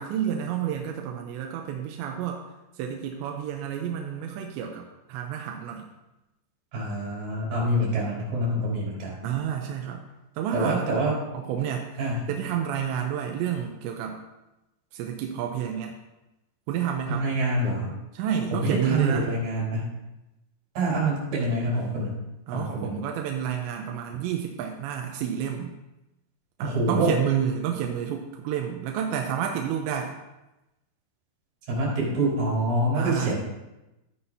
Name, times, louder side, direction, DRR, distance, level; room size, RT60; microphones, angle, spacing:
voice 1, 0.0-2.4 2.8-5.9 9.2-10.0 10.4-10.9 11.3-14.2 14.9-16.0 16.7-17.2 18.1-19.3 22.5-25.7 26.6-30.1 32.9-33.4, right 9 dB, 90° right, 2 dB, 3.0 m, -30 dB
voice 2, 6.7-9.1 10.5-11.1 12.0-12.3 17.1-17.9 18.5-19.9 20.8-22.2 22.5-23.0 26.6-27.1 31.7-33.4, right 1 dB, 55° right, -5 dB, 5.7 m, -26 dB
13.5 x 9.6 x 2.8 m, 0.97 s
omnidirectional pair, 5.0 m